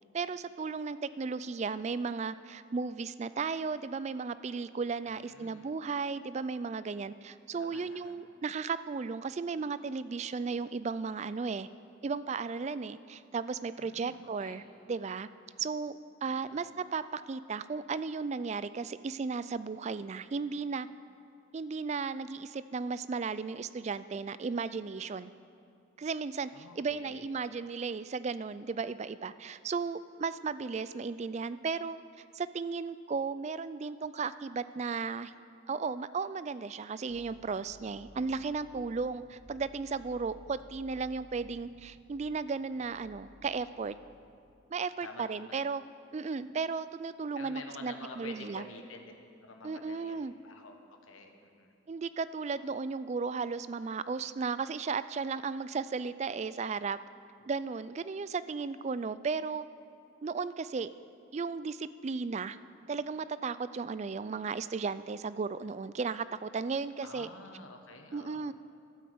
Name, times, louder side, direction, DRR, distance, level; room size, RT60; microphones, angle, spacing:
voice 1, 0.1-11.7 12.0-14.6 14.9-15.3 15.6-20.9 21.5-25.3 26.0-32.0 32.3-35.3 35.7-43.9 44.7-45.8 46.1-48.6 49.6-50.3 51.9-57.0 57.4-59.7 60.2-60.9 61.3-62.6 62.9-67.3 68.1-68.5, right 4 dB, 35° right, 15 dB, 0.3 m, -35 dB
voice 2, 5.0-5.7 7.6-8.1 13.8-14.6 16.2-16.7 26.5-27.3 45.0-45.5 46.4-46.5 47.3-49.1 49.4-50.8 51.0-51.7 57.4-57.5 67.0-68.5, left 3 dB, 90° left, 4 dB, 1.4 m, -49 dB
sound 1, 37.1-44.5, equal, 55° right, 1.4 m, -57 dB
13.0 x 9.4 x 7.7 m, 2.4 s
head